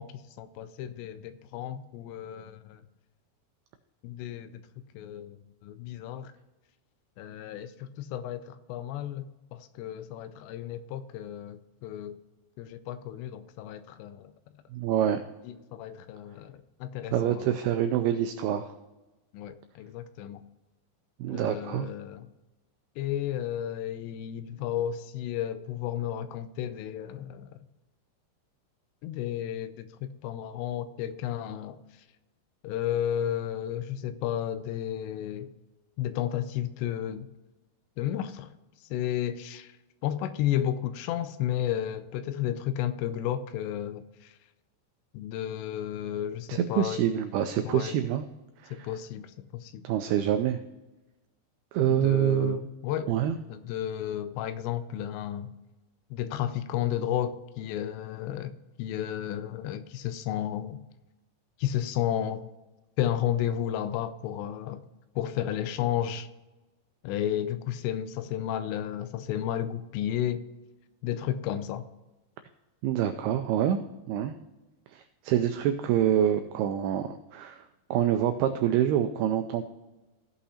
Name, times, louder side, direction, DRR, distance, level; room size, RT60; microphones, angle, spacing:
voice 1, 0.0-2.8 4.0-4.5 4.9-5.4 5.6-6.3 7.2-9.2 9.5-12.2 12.6-14.3 15.4-17.5 19.3-20.4 21.3-22.3 23.0-27.5 29.0-31.8 32.6-35.5 36.0-37.3 38.0-38.5 38.9-39.7 40.0-44.3 45.1-47.0 47.6-48.0 48.7-49.8 51.9-53.1 53.5-55.5 56.1-60.8 61.6-62.5 63.0-64.8 65.2-66.3 67.0-70.4 71.0-71.9, left 11 dB, 85° left, 12 dB, 2.7 m, -32 dB
voice 2, 14.7-15.2 17.1-18.7 21.2-21.9 46.5-48.2 48.6-48.9 49.8-50.6 51.7-52.7 53.1-53.4 72.8-73.8 74.1-74.4 74.9-77.6 77.9-79.6, right 10 dB, 85° right, 8 dB, 2.2 m, -26 dB
16.0 x 5.6 x 4.2 m, 1.1 s
omnidirectional pair, 5.1 m